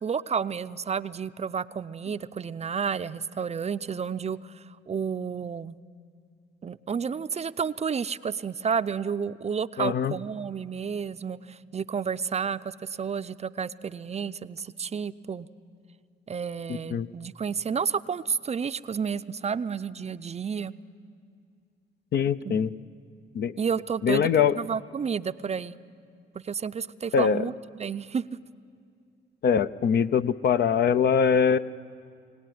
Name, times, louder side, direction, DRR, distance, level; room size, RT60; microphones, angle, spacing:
voice 1, 0.0-5.8 6.6-15.5 16.3-20.7 22.4-22.6 23.6-24.3 24.5-25.7 26.4-27.5 27.8-28.2, right 6 dB, 35° right, 13 dB, 0.5 m, -31 dB
voice 2, 9.8-10.1 16.7-17.1 22.1-22.7 23.3-23.5 24.0-24.6 27.1-27.4 29.4-31.6, left 7 dB, 55° left, 13 dB, 0.7 m, -23 dB
23.5 x 17.5 x 9.4 m, 2.3 s
cardioid pair, 90°, 20 cm